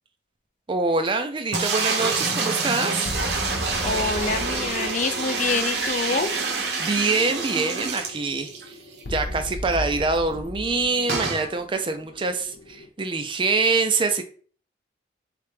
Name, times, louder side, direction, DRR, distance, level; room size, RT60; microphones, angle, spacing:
voice 1, 0.7-3.1 6.8-8.5 9.1-14.2, right 3 dB, 25° right, 7 dB, 0.4 m, -25 dB
sound 1, 1.5-8.7 9.0-9.1 9.3-9.4 11.1-11.4, right 4 dB, 60° right, 0.8 m, -27 dB
sound 2, 3.0-12.9, left 1 dB, 85° left, 0.8 m, -37 dB
voice 2, 3.8-6.3, left 4 dB, 40° left, 9 dB, 0.4 m, -26 dB
3.8 x 3.3 x 3.2 m, 0.43 s
head